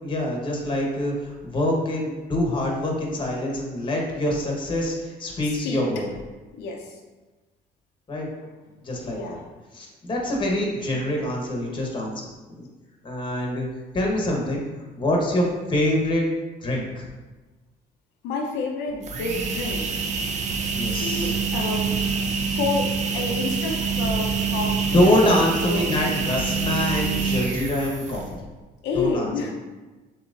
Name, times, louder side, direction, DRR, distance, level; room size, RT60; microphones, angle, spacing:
voice 1, 0.0-6.1 8.1-8.3 8.8-9.4 9.7-12.2 12.5-12.7 13.0-13.7 13.9-14.6 15.0-16.2 16.6-17.1 20.7-21.5 24.9-28.4 28.9-29.5, left 1 dB, 30° left, -1 dB, 1.2 m, -25 dB
voice 2, 6.6-6.9 9.1-9.4 18.2-20.0 20.9-22.0 22.5-26.0 28.8-29.5, left 3 dB, 85° left, 0 dB, 0.7 m, -29 dB
sound 1, 18.9-28.4, right 5 dB, 45° right, 0.5 m, -26 dB
7.0 x 3.0 x 2.5 m, 1.2 s
cardioid pair, 110°, 17 cm